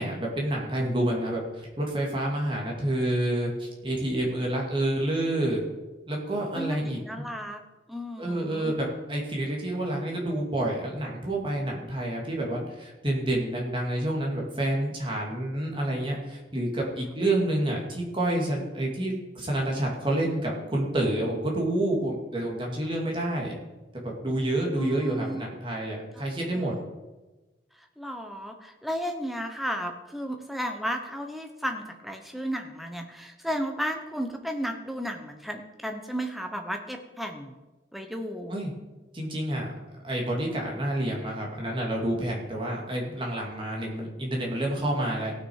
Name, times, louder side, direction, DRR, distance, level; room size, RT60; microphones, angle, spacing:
voice 1, 0.0-5.6 6.1-7.2 8.2-23.5 24.0-26.8 38.5-38.7 39.1-39.7 40.0-45.3, right 1 dB, 30° right, -1 dB, 2.4 m, -28 dB
voice 2, 6.5-7.6 7.9-8.7 24.8-25.4 26.5-26.7 28.0-37.5 37.9-38.6, equal, ahead, 5 dB, 1.0 m, -33 dB
17.0 x 6.3 x 4.8 m, 1.1 s
head